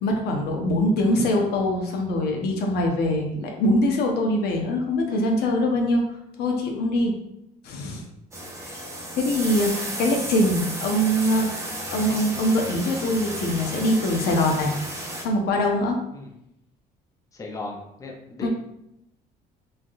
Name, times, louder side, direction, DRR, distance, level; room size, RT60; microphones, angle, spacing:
voice 1, 0.0-6.0 6.4-7.1 7.6-8.0 8.7-8.8 9.2-14.7 15.2-16.0 18.4-18.5, left 1 dB, 75° left, 1 dB, 0.6 m, -23 dB
sound 1, 8.3-15.2, right 1 dB, 15° right, 0.6 m, -33 dB
voice 2, 17.3-18.5, left 2 dB, 20° left, 0 dB, 0.6 m, -36 dB
3.2 x 2.3 x 2.6 m, 0.81 s
cardioid pair, 110°, 17 cm